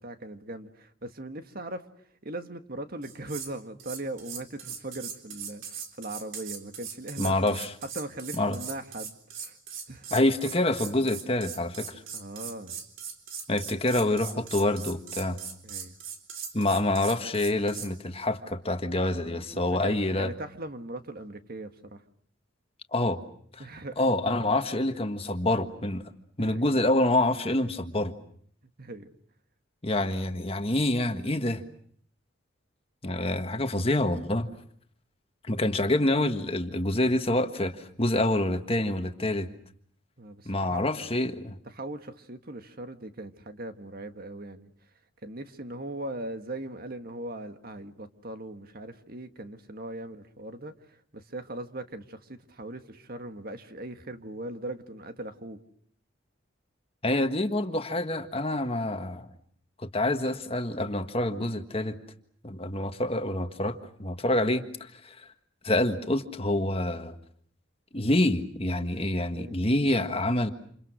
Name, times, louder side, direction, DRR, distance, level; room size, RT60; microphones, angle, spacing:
voice 1, 0.0-1.9 2.2-7.6 7.9-9.6 9.9-10.2 12.1-12.8 15.6-16.0 19.2-22.0 23.6-24.0 26.4-26.6 28.8-29.1 40.2-40.9 41.6-44.7 45.2-55.6 69.3-69.6, right 1 dB, 50° right, 8 dB, 1.8 m, -39 dB
sound 1, 3.0-3.5 3.8-17.9, right 7 dB, 75° right, 3.8 m, -40 dB
voice 2, 7.2-7.7 8.4-8.6 10.1-12.0 13.5-15.4 16.5-20.3 22.9-23.2 23.5-23.6 24.0-26.0 26.4-28.1 29.8-31.6 33.0-34.5 35.4-39.5 40.4-41.6 57.0-59.3 59.8-62.0 62.4-65.3 65.6-67.1 67.9-70.5, left 1 dB, 30° left, 7 dB, 1.6 m, -27 dB
29.0 x 28.5 x 6.4 m, 0.63 s
head